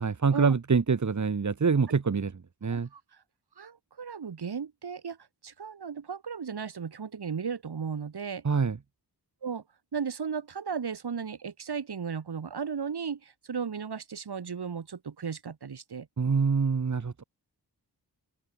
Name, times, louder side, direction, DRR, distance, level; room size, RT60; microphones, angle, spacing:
voice 1, 0.0-2.9 8.4-8.8 16.2-17.2, right 5 dB, 45° right, 2.6 m, -26 dB
voice 2, 3.6-5.2 5.4-8.5 9.4-9.6 9.9-16.1, right 6 dB, 65° right, 7.0 m, -35 dB
wide cardioid pair, 170°, 41 cm